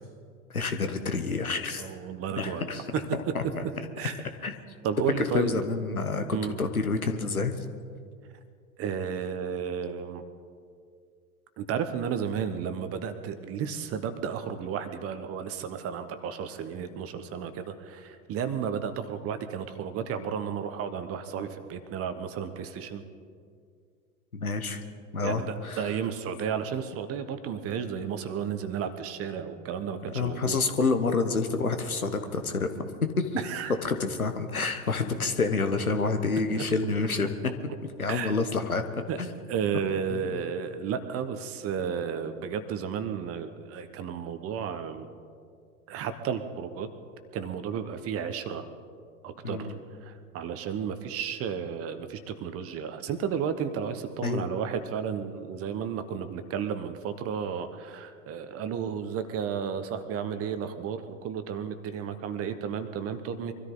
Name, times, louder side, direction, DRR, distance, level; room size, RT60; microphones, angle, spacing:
voice 1, 0.5-1.9 2.4-2.8 3.3-3.6 4.4-4.5 5.3-7.5 24.3-24.8 25.1-25.9 30.1-33.4 33.8-37.3 38.0-39.3 40.1-40.4 49.4-49.8 54.2-54.5, left 4 dB, 90° left, 8 dB, 1.3 m, -28 dB
voice 2, 1.8-2.6 2.9-3.3 4.0-4.2 4.8-5.5 6.3-6.5 8.8-10.2 11.6-23.0 25.2-30.6 33.4-33.7 38.1-38.3 39.1-39.2 39.5-45.1 45.9-46.9 47.3-48.6 49.2-49.7 50.0-63.5, right 7 dB, 35° right, 10 dB, 1.2 m, -33 dB
23.5 x 13.5 x 3.9 m, 2.2 s
figure-of-eight pair, 90°, 42 cm